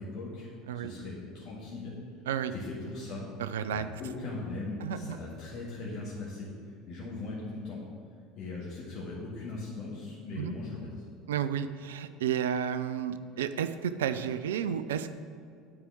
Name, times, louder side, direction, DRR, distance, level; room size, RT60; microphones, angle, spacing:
voice 1, 0.0-1.9 2.5-3.3 3.7-7.8 8.4-11.0, left 3 dB, 45° left, -7 dB, 1.8 m, -39 dB
voice 2, 3.4-3.9 4.8-5.2 10.4-10.5 11.3-15.1, right 8 dB, 70° right, 11 dB, 0.3 m, -32 dB
8.8 x 4.8 x 6.0 m, 2.3 s
figure-of-eight pair, 65°, 0 cm